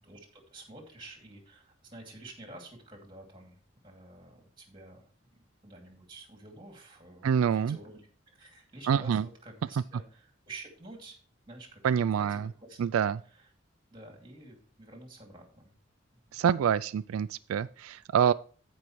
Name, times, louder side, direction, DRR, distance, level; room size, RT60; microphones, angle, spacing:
voice 1, 0.0-11.2 11.5-12.8 13.2-13.5 13.9-15.7 16.2-16.4, right 2 dB, 25° right, 2 dB, 2.4 m, -50 dB
voice 2, 7.2-7.8 8.9-9.2 11.8-12.5 12.8-13.2 16.3-18.3, right 8 dB, 90° right, 15 dB, 0.3 m, -26 dB
16.0 x 5.4 x 3.1 m, 0.41 s
head